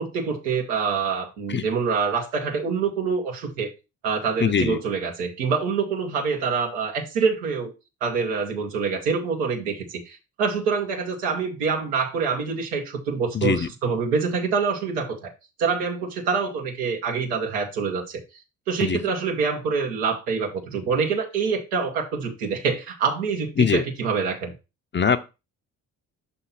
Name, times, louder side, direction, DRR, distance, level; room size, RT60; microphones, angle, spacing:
voice 1, 0.0-3.7 4.0-7.7 8.0-15.3 15.6-18.2 18.7-24.5, right 5 dB, 85° right, 1.4 m, -26 dB
voice 2, 4.4-4.8 13.3-13.7 18.8-19.0 23.6-23.8 24.9-25.2, left 6 dB, 25° left, 0.6 m, -21 dB
5.7 x 3.4 x 5.8 m
hypercardioid pair, 50°, 45 cm